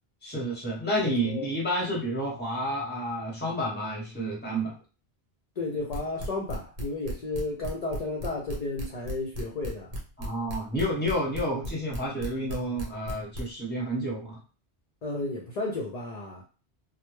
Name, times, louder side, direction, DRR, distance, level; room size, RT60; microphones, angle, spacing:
voice 1, 0.2-4.8 10.2-14.4, equal, 10° left, 0.8 m, -30 dB
voice 2, 1.0-1.5 5.6-9.9 15.0-16.4, left 3 dB, 55° left, 0.5 m, -33 dB
sound 1, 5.9-13.4, equal, 60° right, 0.9 m, -34 dB
2.1 x 2.0 x 3.0 m
omnidirectional pair, 1.1 m